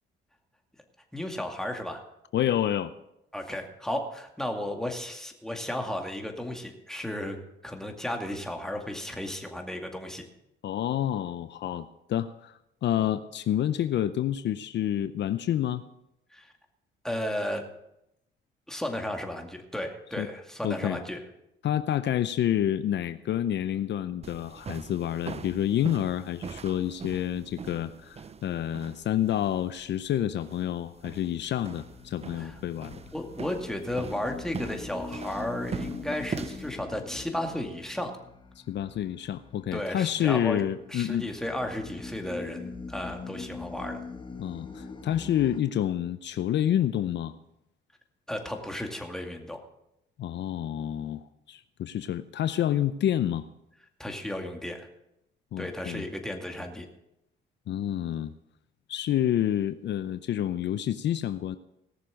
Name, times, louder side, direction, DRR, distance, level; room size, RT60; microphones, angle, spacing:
voice 1, 1.1-2.0 3.3-7.4 7.6-10.2 16.3-16.5 17.0-17.6 18.7-21.2 32.4-32.6 33.1-38.1 39.7-40.6 40.9-44.0 48.3-49.6 54.0-54.9 55.6-56.9, left 1 dB, ahead, 3 dB, 2.2 m, -34 dB
voice 2, 2.3-2.9 10.6-15.8 20.2-20.3 20.6-21.0 21.6-33.0 38.7-41.3 44.4-47.4 50.2-53.4 55.5-56.1 57.7-58.3 58.9-61.6, left 11 dB, 65° left, 13 dB, 0.6 m, -28 dB
sound 1, 24.2-36.7, right 6 dB, 30° right, 0.7 m, -42 dB
sound 2, 31.6-45.6, left 4 dB, 25° left, 1.4 m, -43 dB
18.5 x 6.8 x 6.3 m, 0.84 s
cardioid pair, 90°, 20 cm